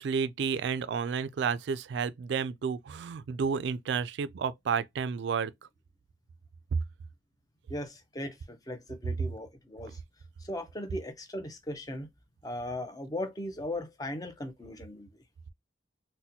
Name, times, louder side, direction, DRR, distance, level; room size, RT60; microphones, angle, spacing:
voice 1, 0.0-5.5, right 6 dB, 70° right, 0.3 m, -31 dB
voice 2, 7.7-10.0 10.4-12.1 12.4-15.1, left 1 dB, 20° left, 0.6 m, -38 dB
4.1 x 2.1 x 2.7 m
head